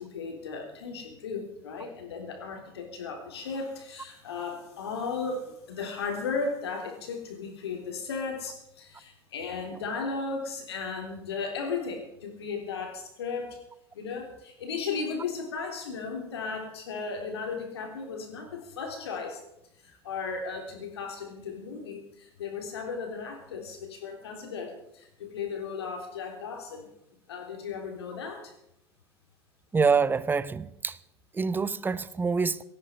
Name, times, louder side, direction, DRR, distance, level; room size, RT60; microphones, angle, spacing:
voice 1, 0.0-13.6 13.9-19.4 19.8-26.9 27.3-28.5, left 4 dB, 70° left, 3.5 m, -35 dB
voice 2, 29.7-30.9 31.4-32.6, right 5 dB, 15° right, 0.8 m, -26 dB
18.0 x 13.5 x 5.6 m
figure-of-eight pair, 75°, 14 cm